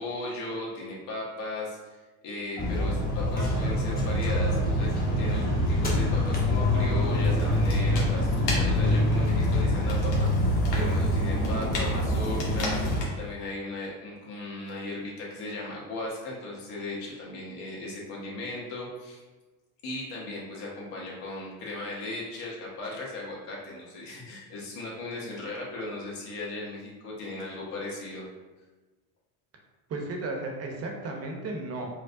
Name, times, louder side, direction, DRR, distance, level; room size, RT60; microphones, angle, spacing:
voice 1, 0.0-2.0 2.2-12.8 13.2-19.2 19.8-28.2, left 2 dB, 60° left, -4 dB, 1.4 m, -37 dB
sound 1, 2.6-13.0, left 1 dB, 20° left, 0.9 m, -25 dB
sound 2, 7.2-13.1, left 2 dB, 85° left, 1.0 m, -38 dB
voice 2, 29.9-31.9, right 2 dB, 30° right, 1 dB, 0.8 m, -34 dB
4.7 x 2.2 x 2.5 m, 1.2 s
supercardioid pair, 100°, 47 cm